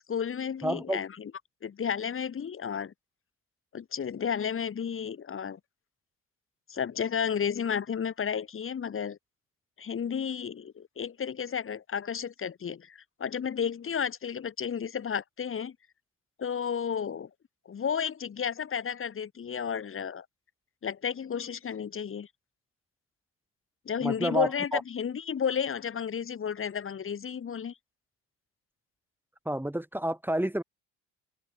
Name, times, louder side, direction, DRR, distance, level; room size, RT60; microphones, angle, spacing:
voice 1, 0.1-1.3 1.6-2.9 3.7-5.6 6.7-9.2 9.8-15.7 16.4-17.3 17.6-20.2 20.8-22.3 23.8-27.7, left 7 dB, 35° left, 1.6 m, -32 dB
voice 2, 0.6-1.0 24.0-24.8 29.4-30.6, right 1 dB, 5° right, 3.0 m, -29 dB
open air
hypercardioid pair, 65°, 37 cm